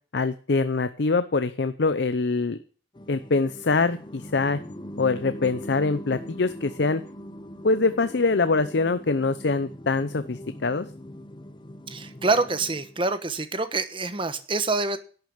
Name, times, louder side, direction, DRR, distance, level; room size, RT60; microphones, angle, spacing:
voice 1, 0.1-2.6 3.1-4.6 5.0-7.0 7.6-10.9, left 3 dB, 70° left, 12 dB, 0.7 m, -24 dB
sound 1, 2.9-13.1, equal, 25° left, 0.8 m, -41 dB
voice 2, 11.9-15.0, right 3 dB, 30° right, 11 dB, 1.1 m, -26 dB
11.5 x 6.4 x 8.6 m, 0.41 s
head